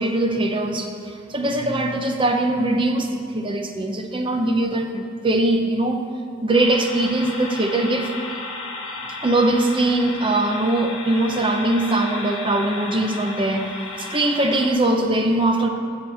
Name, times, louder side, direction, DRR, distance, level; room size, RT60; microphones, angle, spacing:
voice 1, 0.0-6.1 6.4-8.1 9.2-15.7, right 2 dB, 25° right, 4 dB, 0.6 m, -21 dB
sound 1, 6.5-14.7, left 3 dB, 80° left, 1.4 m, -34 dB
15.0 x 7.0 x 3.5 m, 2.4 s
head